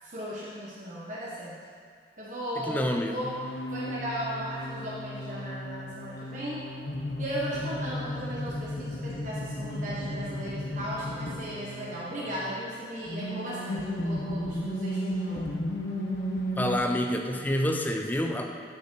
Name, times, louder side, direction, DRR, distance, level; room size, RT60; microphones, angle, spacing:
voice 1, 0.0-1.6 2.2-3.3 3.7-6.6 7.2-15.7, equal, 45° right, -6 dB, 1.2 m, -36 dB
voice 2, 2.6-3.2 16.6-18.5, left 1 dB, 10° left, 3 dB, 0.6 m, -28 dB
sound 1, 3.2-12.4 13.0-16.8, equal, 90° left, 1.3 m, -34 dB
13.5 x 6.3 x 4.6 m, 2.1 s
head